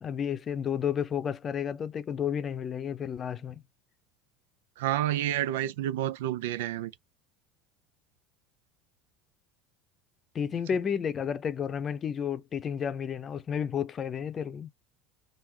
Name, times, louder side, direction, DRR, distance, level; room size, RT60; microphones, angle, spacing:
voice 1, 0.0-3.6 10.3-14.7, left 8 dB, 35° left, 0.6 m, -31 dB
voice 2, 4.8-6.9, right 13 dB, 85° right, 0.4 m, -29 dB
3.6 x 2.5 x 2.8 m
supercardioid pair, 100°, 0 cm